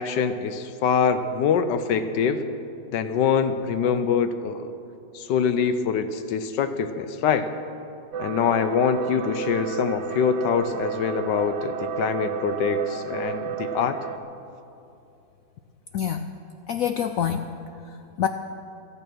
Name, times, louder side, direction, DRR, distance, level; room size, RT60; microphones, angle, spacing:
voice 1, 0.0-2.4 2.9-4.7 5.1-7.5 8.2-14.0, left 6 dB, 70° left, 10 dB, 1.3 m, -24 dB
sound 1, 8.1-14.2, right 7 dB, 70° right, 0.7 m, -31 dB
voice 2, 15.9-16.3 16.7-17.5 17.9-18.3, left 9 dB, 85° left, 9 dB, 0.7 m, -26 dB
15.5 x 14.0 x 6.2 m, 2.7 s
omnidirectional pair, 2.0 m